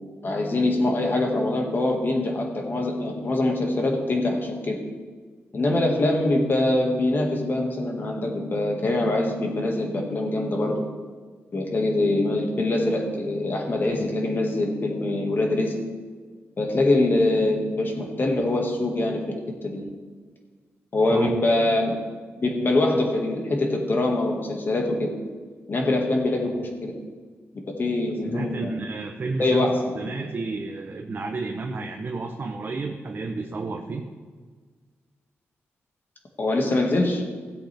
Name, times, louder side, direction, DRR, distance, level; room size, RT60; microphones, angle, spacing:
voice 1, 0.2-4.8 5.5-10.8 11.5-15.8 16.6-19.2 19.6-19.8 20.9-22.0 22.4-25.1 25.7-26.9 27.6-28.7 29.4-30.1 36.4-37.2, left 2 dB, 45° left, 1 dB, 2.0 m, -24 dB
voice 2, 28.3-29.7 29.9-34.1, right 3 dB, 45° right, 2 dB, 0.8 m, -31 dB
16.5 x 7.8 x 3.5 m, 1.5 s
cardioid pair, 90°, 5 cm